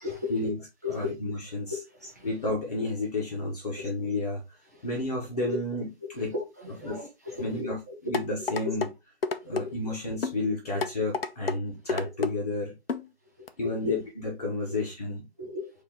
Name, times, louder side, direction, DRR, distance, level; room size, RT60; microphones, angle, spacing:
voice 1, 0.0-0.5 0.8-1.1 1.7-2.3 3.8-3.9 5.5-5.6 6.3-7.9 8.6-8.8 9.5-9.8 12.0-12.2 13.7-13.9 14.7-14.8 15.4-15.7, left 3 dB, 15° right, 0.7 m, -36 dB
voice 2, 0.9-1.8 2.2-4.4 4.8-6.3 6.8-7.0 7.4-8.9 9.4-12.7 13.6-15.2, left 2 dB, 40° left, 1.1 m, -31 dB
sound 1, 8.1-8.9 9.2-9.7 10.2-10.4 10.8-11.6 11.9-12.3 12.9-13.1 13.5-13.6, left 4 dB, 65° left, 0.6 m, -29 dB
4.6 x 2.8 x 3.8 m
figure-of-eight pair, 165°, 32 cm